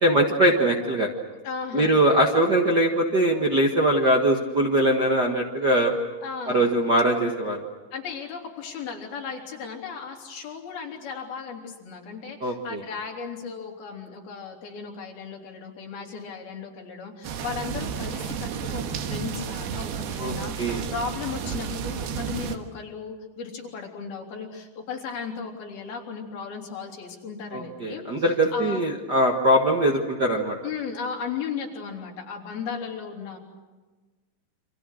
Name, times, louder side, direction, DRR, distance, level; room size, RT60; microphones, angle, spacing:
voice 1, 0.0-1.1 1.7-5.9 6.5-7.6 12.4-12.8 20.2-20.8 27.5-30.6, right 1 dB, 40° right, -1 dB, 1.5 m, -22 dB
voice 2, 1.4-1.9 6.2-6.7 7.9-28.0 28.5-28.8 30.6-33.4, left 6 dB, 70° left, 0 dB, 5.1 m, -36 dB
sound 1, 17.2-22.6, right 7 dB, 90° right, 3.5 m, -32 dB
29.0 x 26.0 x 6.5 m, 1.2 s
omnidirectional pair, 4.4 m